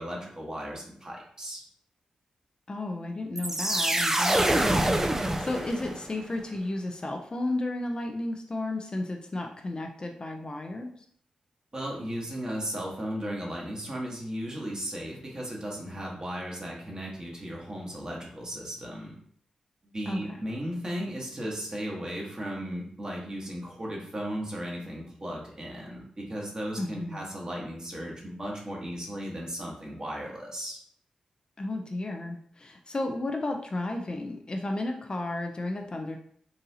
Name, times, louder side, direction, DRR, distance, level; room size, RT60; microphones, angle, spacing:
voice 1, 0.0-1.6 11.7-19.1 19.8-30.8, equal, 35° right, -2 dB, 1.3 m, -36 dB
voice 2, 2.7-10.9 20.1-20.4 26.8-27.2 31.6-36.2, left 2 dB, 40° left, 3 dB, 0.5 m, -33 dB
sound 1, 3.4-6.2, right 1 dB, 20° right, 0.4 m, -25 dB
4.0 x 2.6 x 2.8 m, 0.62 s
cardioid pair, 45°, 2 cm